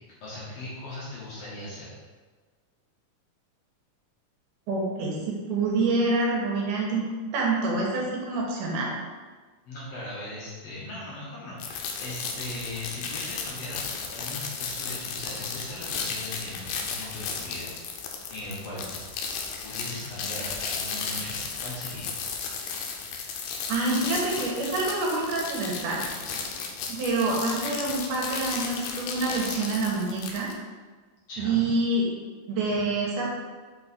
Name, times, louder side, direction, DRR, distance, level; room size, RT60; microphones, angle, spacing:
voice 1, 0.2-2.0 9.7-13.8 14.1-17.7 18.3-18.9 19.6-22.1 31.3-31.6, left 1 dB, 60° left, -7 dB, 2.0 m, -39 dB
voice 2, 4.7-7.0 7.3-8.9 23.7-26.0 26.9-30.5 31.4-32.1 32.5-33.3, right 3 dB, 70° right, -3 dB, 2.5 m, -27 dB
sound 1, 11.6-30.5, left 5 dB, 80° left, 2.3 m, -34 dB
5.4 x 4.7 x 4.2 m, 1.4 s
omnidirectional pair, 3.9 m